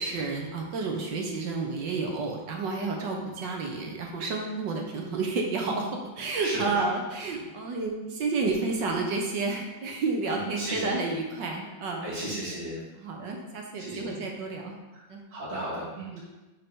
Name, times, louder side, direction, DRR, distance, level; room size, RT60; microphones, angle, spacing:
voice 1, 0.0-12.1 13.0-14.8 15.1-15.2 16.1-16.2, right 3 dB, 70° right, 1 dB, 1.6 m, -30 dB
voice 2, 6.4-6.7 10.3-10.9 12.0-12.8 13.8-14.2 15.3-16.2, right 1 dB, 30° right, -9 dB, 2.8 m, -34 dB
9.2 x 4.3 x 3.6 m, 1.1 s
omnidirectional pair, 2.1 m